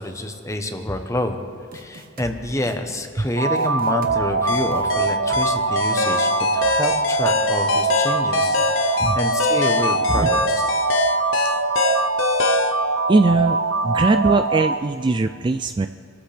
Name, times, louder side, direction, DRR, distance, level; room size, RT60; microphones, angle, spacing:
voice 1, 0.0-1.4 1.7-10.6, left 1 dB, 15° left, 6 dB, 1.0 m, -27 dB
sound 1, 1.7-2.4 2.6-3.0 3.6-4.2 4.5-4.8, right 1 dB, 50° right, 1.2 m, -40 dB
sound 2, 3.4-14.8, right 4 dB, 80° right, 0.7 m, -22 dB
sound 3, 4.5-12.8, left 5 dB, 80° left, 0.9 m, -24 dB
voice 2, 13.1-13.6 13.8-15.9, right 3 dB, 25° right, 8 dB, 0.3 m, -20 dB
26.5 x 13.0 x 3.4 m, 2.4 s
head